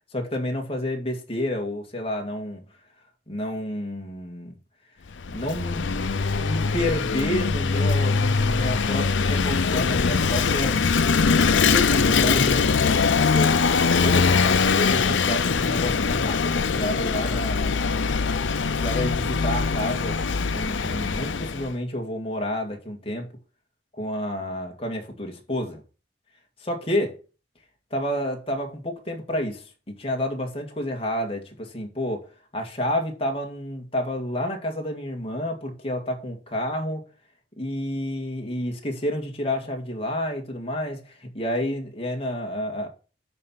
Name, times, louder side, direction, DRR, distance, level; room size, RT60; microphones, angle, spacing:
voice 1, 0.1-2.6 3.3-4.6 5.3-5.9 6.4-10.9 11.6-17.7 18.7-20.2 20.5-23.3 24.0-25.8 26.6-27.1 27.9-32.3 32.5-37.1 37.6-42.9, left 1 dB, 30° left, 2.1 m, -30 dB
Vehicle / Engine, 5.1-21.7, left 5 dB, 90° left, 0.6 m, -22 dB
10.5 x 4.4 x 5.7 m
head